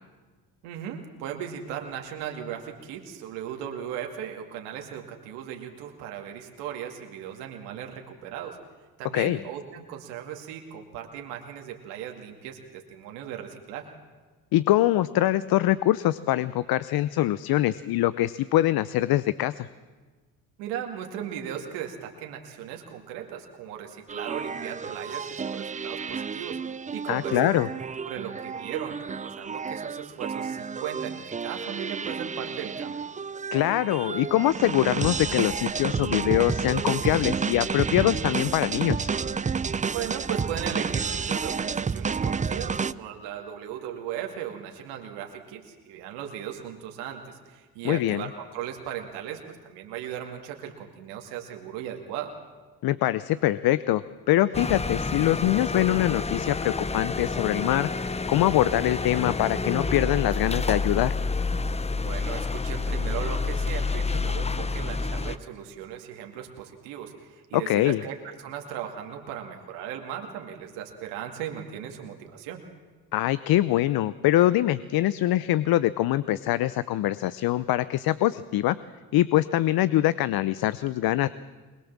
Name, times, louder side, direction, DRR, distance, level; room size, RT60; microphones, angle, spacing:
voice 1, 0.6-8.6 9.0-13.8 20.6-27.6 28.0-33.0 39.9-52.3 61.9-72.6, right 9 dB, 80° right, 3 dB, 2.3 m, -37 dB
voice 2, 14.5-19.7 27.1-27.7 33.5-39.1 47.8-48.2 52.8-61.1 67.5-68.0 73.1-78.8 79.1-81.3, left 14 dB, 65° left, 16 dB, 0.8 m, -24 dB
sound 1, 24.1-42.9, right 5 dB, 20° right, 0.6 m, -30 dB
sound 2, 54.5-65.4, left 4 dB, 15° left, 0.8 m, -29 dB
22.0 x 21.0 x 7.4 m, 1.4 s
supercardioid pair, 65°, 40 cm